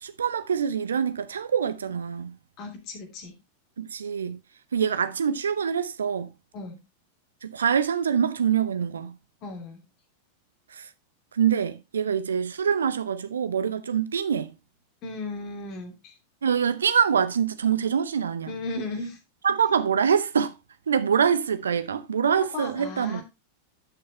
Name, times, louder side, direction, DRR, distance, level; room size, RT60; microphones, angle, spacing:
voice 1, 0.0-2.4 3.8-4.4 4.7-6.3 7.4-9.2 10.7-10.9 11.3-14.5 16.4-18.5 19.4-20.5 20.9-23.2, right 7 dB, 70° right, 0.7 m, -25 dB
voice 2, 2.6-3.3 6.5-6.8 9.4-9.8 15.0-16.1 18.5-19.2 22.5-23.2, left 2 dB, 40° left, 2.8 m, -35 dB
11.0 x 6.5 x 3.2 m
figure-of-eight pair, 90°, 0 cm